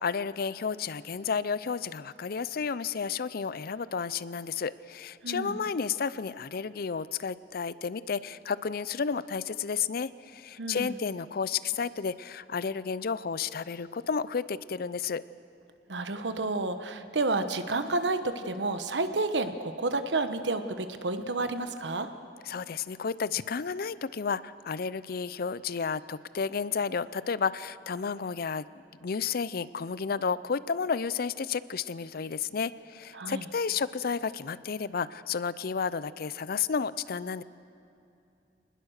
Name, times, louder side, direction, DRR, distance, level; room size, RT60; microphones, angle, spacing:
voice 1, 0.0-15.2 22.4-28.7 29.0-37.4, left 6 dB, 60° left, 17 dB, 0.5 m, -32 dB
voice 2, 5.2-5.6 10.6-10.9 15.9-22.1 33.1-33.4, right 2 dB, 85° right, 9 dB, 1.2 m, -30 dB
25.0 x 20.0 x 6.5 m, 2.6 s
head